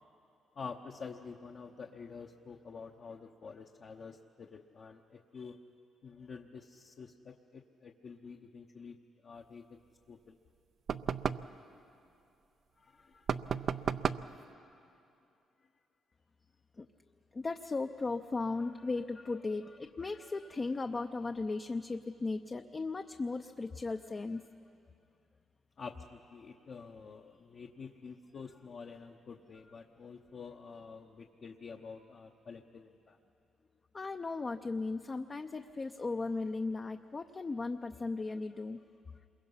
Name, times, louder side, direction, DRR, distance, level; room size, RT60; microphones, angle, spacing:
voice 1, 0.5-5.6 6.0-9.0 9.2-9.6 10.1-10.4 12.8-13.3 13.8-15.0 25.8-33.2, left 5 dB, 50° left, 1 dB, 0.9 m, -48 dB
sound 1, 10.9-11.5 13.3-14.3, right 7 dB, 55° right, 0.5 m, -33 dB
voice 2, 17.3-24.5 33.9-39.2, left 3 dB, 30° left, 6 dB, 0.6 m, -37 dB
27.5 x 22.5 x 5.7 m, 2.6 s
cardioid pair, 90°, 0 cm